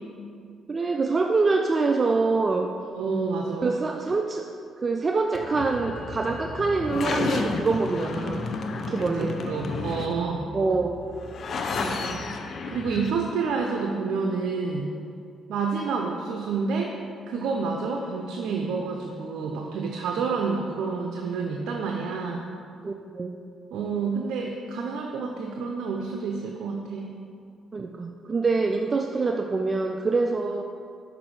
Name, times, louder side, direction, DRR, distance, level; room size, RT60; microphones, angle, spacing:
voice 1, 0.7-2.7 3.6-4.5 4.8-8.4 8.7-9.4 10.5-11.0 22.8-23.3 27.7-30.6, right 3 dB, 35° right, 4 dB, 0.3 m, -25 dB
voice 2, 3.0-3.7 8.8-10.5 11.4-12.2 12.7-14.9 15.5-16.9 17.3-22.4 23.7-27.1, right 4 dB, 80° right, 1 dB, 0.6 m, -29 dB
sound 1, 5.3-13.1, left 4 dB, 55° left, 0.5 m, -32 dB
6.0 x 5.3 x 4.7 m, 2.4 s
cardioid pair, 90°, 0 cm